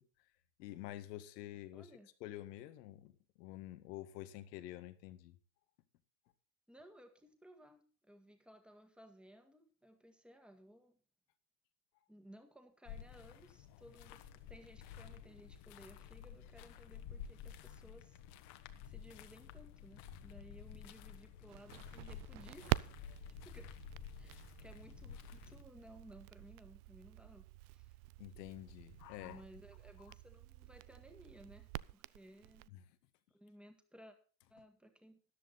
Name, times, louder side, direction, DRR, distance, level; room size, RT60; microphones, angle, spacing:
voice 1, 0.6-1.9 2.2-5.4 13.7-13.8 28.2-29.4 32.7-32.8, left 14 dB, 80° left, 10 dB, 1.8 m, -48 dB
voice 2, 1.7-2.1 6.7-11.0 12.1-18.2 18.9-22.9 23.4-23.7 24.2-28.0 29.2-32.7 33.3-34.2 34.5-35.2, equal, ahead, 5 dB, 1.8 m, -59 dB
sound 1, 12.8-25.6, left 8 dB, 55° left, 1.5 m, -52 dB
Crackle, 21.5-32.7, right 20 dB, 55° right, 0.5 m, -46 dB
14.0 x 10.5 x 4.1 m, 0.38 s
supercardioid pair, 135°, 49 cm